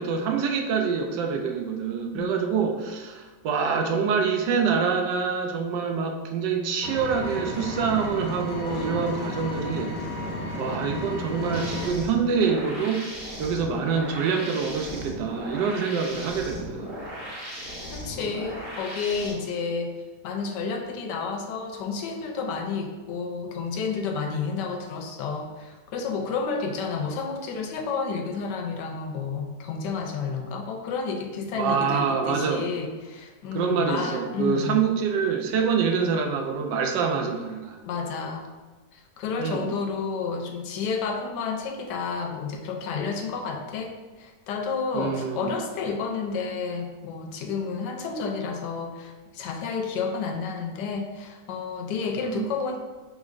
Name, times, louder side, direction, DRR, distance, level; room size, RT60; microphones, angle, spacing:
voice 1, 0.0-10.1 10.6-13.1 13.4-17.0 31.5-32.6 33.5-37.8 39.4-39.7 44.9-45.5 52.2-52.5, right 6 dB, 85° right, 4 dB, 1.2 m, -26 dB
Engine, 6.8-11.9, left 1 dB, 60° left, 1.3 m, -33 dB
sound 1, 11.5-19.3, equal, 35° right, 1.6 m, -37 dB
voice 2, 17.9-19.9 20.2-34.8 37.8-38.5 38.9-52.8, left 5 dB, 85° left, 3 dB, 1.2 m, -31 dB
5.2 x 3.3 x 2.5 m, 1.3 s
omnidirectional pair, 1.8 m